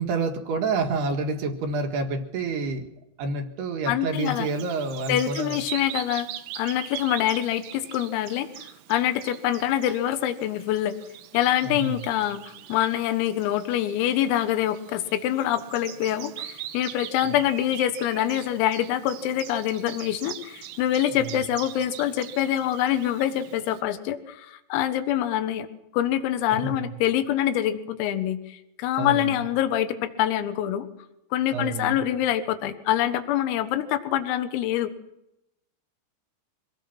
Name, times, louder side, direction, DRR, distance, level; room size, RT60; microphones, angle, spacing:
voice 1, 0.0-2.9 3.2-5.6 11.6-12.0 21.2-21.3 26.5-26.9 29.0-29.3 31.5-32.0, right 3 dB, 60° right, 4 dB, 3.3 m, -28 dB
voice 2, 3.9-4.5 5.1-6.3 6.6-8.5 8.9-11.0 11.3-25.7 25.9-30.9 31.3-34.9, left 11 dB, 85° left, 9 dB, 4.0 m, -25 dB
Bird vocalization bird call bird song, 4.1-23.8, right 12 dB, 80° right, 3.9 m, -42 dB
25.5 x 18.5 x 6.0 m, 0.85 s
omnidirectional pair, 5.9 m